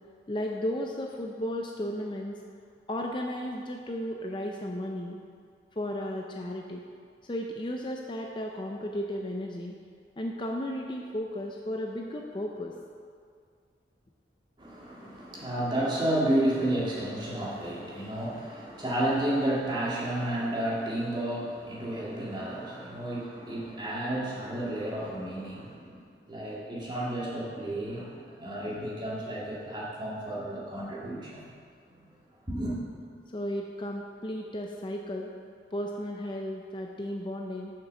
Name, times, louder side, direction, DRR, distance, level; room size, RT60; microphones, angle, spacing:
voice 1, 0.3-2.4 2.9-5.2 5.8-6.8 7.2-9.7 10.2-12.8 33.3-35.3 35.7-37.7, left 1 dB, 25° left, 1 dB, 0.5 m, -34 dB
voice 2, 14.6-26.0 26.3-31.5 32.5-32.7, right 1 dB, 25° right, -6 dB, 2.1 m, -31 dB
7.4 x 6.4 x 6.2 m, 2.2 s
head